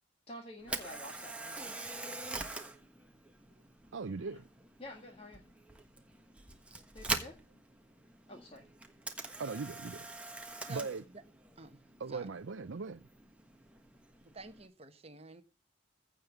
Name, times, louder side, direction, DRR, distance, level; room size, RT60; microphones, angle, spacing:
voice 1, 0.3-1.7 4.2-4.4 4.8-5.4 6.9-7.3 8.3-8.6, left 1 dB, 30° left, 2.0 m, -49 dB
Camera, 0.6-14.7, right 2 dB, 5° right, 1.3 m, -44 dB
voice 2, 3.9-4.5 9.4-10.1 10.7-11.0 12.0-13.0, right 4 dB, 75° right, 0.6 m, -39 dB
voice 3, 14.3-15.4, right 3 dB, 30° right, 1.2 m, -49 dB
15.5 x 5.3 x 8.3 m
head